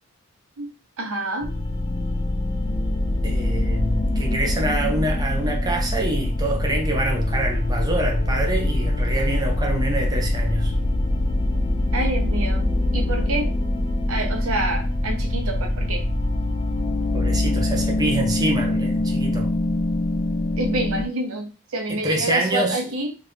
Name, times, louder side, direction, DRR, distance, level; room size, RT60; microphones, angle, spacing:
voice 1, 1.0-1.5 11.9-13.5 14.1-16.1 20.6-23.1, right 2 dB, 70° right, 0.8 m, -27 dB
sound 1, 1.4-21.0, left 1 dB, 20° left, 0.3 m, -23 dB
voice 2, 3.2-10.7 17.1-19.5 21.9-22.8, right 1 dB, 20° right, 0.6 m, -26 dB
2.8 x 2.5 x 3.4 m
head